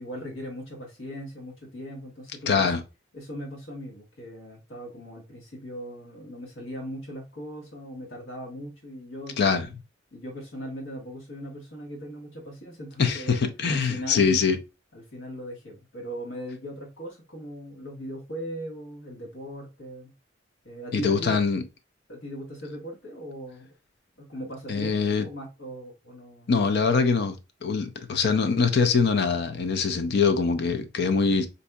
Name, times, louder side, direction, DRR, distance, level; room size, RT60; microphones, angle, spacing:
voice 1, 0.0-2.8 3.1-9.5 10.1-13.4 13.7-14.4 14.9-20.1 20.6-21.4 22.1-23.7 24.2-26.5, equal, 80° left, 1.4 m, -39 dB
voice 2, 2.5-2.8 9.4-9.7 13.0-14.6 20.9-21.6 24.7-25.3 26.5-27.4 27.6-31.5, left 5 dB, 60° left, 0.5 m, -23 dB
4.0 x 2.7 x 2.2 m
head